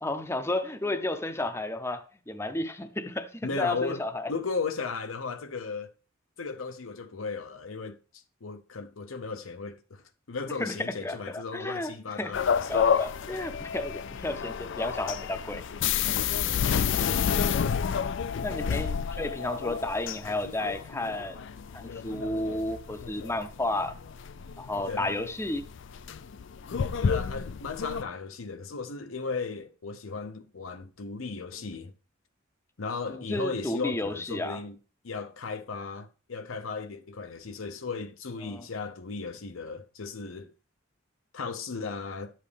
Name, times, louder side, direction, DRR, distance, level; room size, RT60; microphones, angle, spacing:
voice 1, 0.0-4.3 10.6-11.9 12.2-12.3 12.7-15.6 18.4-21.4 21.7-23.9 24.6-25.6 33.1-34.6 38.4-38.7, left 2 dB, 15° left, 0.6 m, -32 dB
voice 2, 3.4-5.9 6.4-13.0 24.9-25.1 27.0-31.9 32.8-34.8 35.0-40.5 41.3-42.3, left 4 dB, 85° left, 0.8 m, -36 dB
sound 1, 12.3-28.0, left 7 dB, 60° left, 0.4 m, -30 dB
11.0 x 7.5 x 3.4 m
head